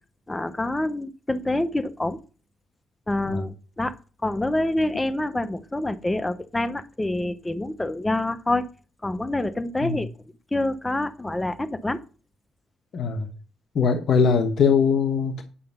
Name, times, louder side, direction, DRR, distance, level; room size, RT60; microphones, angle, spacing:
voice 1, 0.3-2.2 3.1-3.9 4.2-8.7 9.0-10.1 10.5-12.0, left 1 dB, 15° left, 0.8 m, -26 dB
voice 2, 12.9-13.3 13.7-15.4, left 5 dB, 60° left, 1.1 m, -21 dB
10.0 x 5.4 x 5.5 m
cardioid pair, 90°, 0 cm